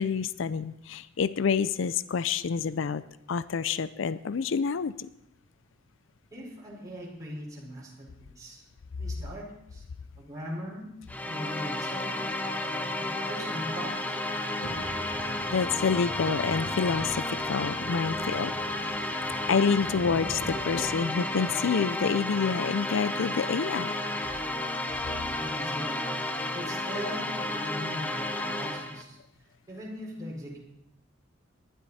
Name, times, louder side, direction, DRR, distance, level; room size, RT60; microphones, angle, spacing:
voice 1, 0.0-3.0 3.3-5.1 15.5-18.5 19.5-23.9, left 5 dB, 65° left, 16 dB, 0.5 m, -28 dB
voice 2, 6.3-8.6 9.0-9.5 9.7-9.8 10.2-10.9 11.3-12.2 12.7-14.1 25.4-26.0 26.5-29.2 29.7-30.6, equal, 20° right, -4 dB, 4.7 m, -40 dB
sound 1, 11.1-29.0, left 1 dB, 10° left, 1.0 m, -32 dB
sound 2, 14.6-21.3, equal, 85° left, 2.3 m, -42 dB
19.5 x 12.0 x 4.2 m, 0.83 s
head